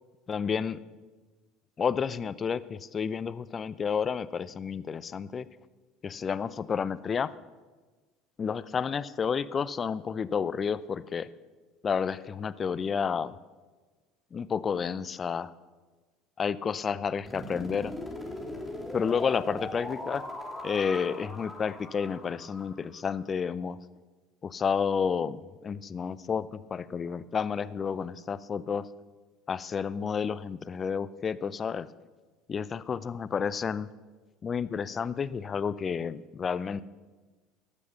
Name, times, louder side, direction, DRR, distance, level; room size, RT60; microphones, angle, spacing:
voice 1, 0.3-0.8 1.8-5.5 6.0-7.3 8.4-11.3 11.8-13.4 14.3-15.5 16.4-17.9 18.9-20.3 20.6-23.8 24.4-28.8 29.5-31.9 32.5-33.9 34.4-36.8, left 6 dB, 35° left, 17 dB, 0.5 m, -30 dB
sound 1, 17.2-23.2, left 1 dB, 5° left, 3.3 m, -40 dB
12.0 x 8.4 x 6.8 m, 1.3 s
hypercardioid pair, 65°, 0 cm